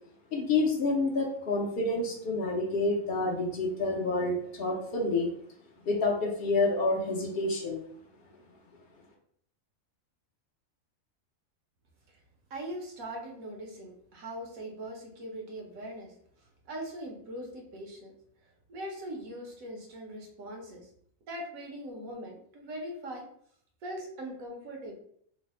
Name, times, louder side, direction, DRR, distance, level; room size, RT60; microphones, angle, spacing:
voice 1, 0.3-5.3 5.8-7.8, left 2 dB, 60° left, -1 dB, 0.7 m, -28 dB
voice 2, 12.5-18.1 18.7-20.9 21.3-23.3 23.8-25.0, right 1 dB, 80° right, 1 dB, 1.2 m, -41 dB
3.2 x 2.0 x 4.1 m, 0.66 s
omnidirectional pair, 1.4 m